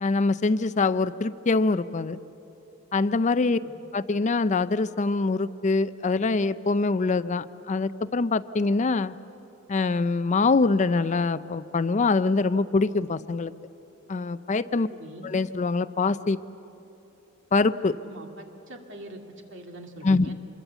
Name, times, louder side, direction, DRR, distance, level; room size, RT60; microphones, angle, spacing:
voice 1, 0.0-2.2 2.9-3.6 3.9-9.1 9.7-13.5 14.1-14.9 15.2-16.4 17.5-17.9 20.0-20.3, left 3 dB, 35° left, 14 dB, 0.5 m, -24 dB
voice 2, 14.9-15.3 18.0-19.2 19.5-20.3, right 1 dB, 65° right, 3 dB, 2.6 m, -43 dB
26.5 x 21.5 x 8.1 m, 3.0 s
head